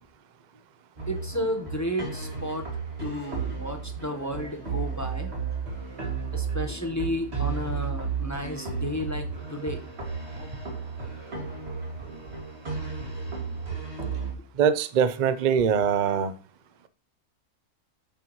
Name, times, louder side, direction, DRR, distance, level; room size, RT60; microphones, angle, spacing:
sound 1, 1.0-14.3, right 5 dB, 40° right, 2.6 m, -33 dB
voice 1, 1.1-2.6 3.0-5.3 6.3-9.8, equal, 15° left, 0.8 m, -32 dB
voice 2, 14.6-16.3, right 7 dB, 60° right, 0.4 m, -22 dB
9.4 x 8.3 x 3.1 m
omnidirectional pair, 1.7 m